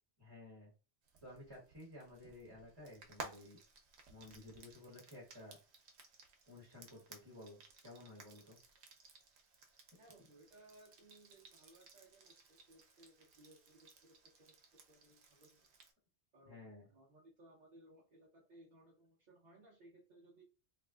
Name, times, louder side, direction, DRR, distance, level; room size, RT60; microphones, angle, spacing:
voice 1, 0.2-0.7 1.2-3.6 4.1-5.6 6.5-8.6 16.4-16.9, left 1 dB, 25° right, -5 dB, 1.0 m, -54 dB
Frying (food), 1.1-15.9, right 3 dB, 90° right, 0.9 m, -58 dB
voice 2, 10.0-14.6 14.9-15.7 16.3-20.4, right 1 dB, 50° right, -5 dB, 0.8 m, -63 dB
3.4 x 2.5 x 2.3 m, 0.34 s
omnidirectional pair, 1.1 m